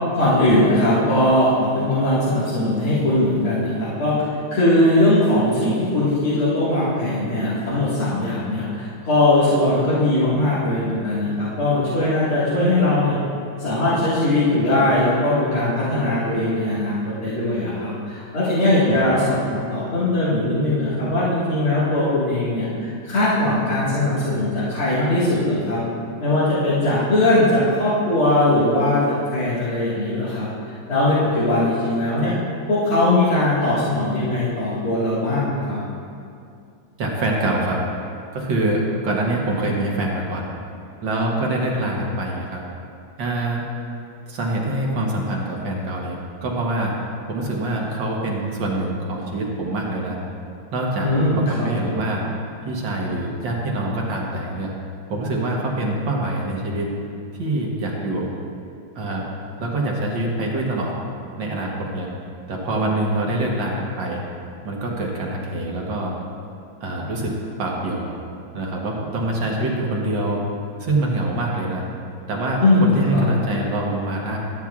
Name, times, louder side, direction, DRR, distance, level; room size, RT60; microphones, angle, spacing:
voice 1, 0.1-4.2 4.5-13.2 13.6-22.6 23.1-25.8 26.2-30.5 30.9-32.3 32.7-35.8 51.0-51.7 72.6-73.2, left 1 dB, 90° left, -12 dB, 2.7 m, -20 dB
voice 2, 37.0-37.8 38.3-40.4 41.0-42.6 43.2-43.6 44.3-46.9 47.3-50.2 50.7-52.2 52.6-54.7 55.1-56.9 57.4-58.3 59.0-59.3 59.6-60.9 61.4-62.1 62.5-64.2 64.6-66.1 66.8-67.3 67.6-68.1 68.5-70.4 70.8-71.8 72.3-74.4, right 1 dB, 65° right, -2 dB, 1.8 m, -25 dB
13.0 x 8.7 x 2.4 m, 2.4 s
omnidirectional pair, 2.3 m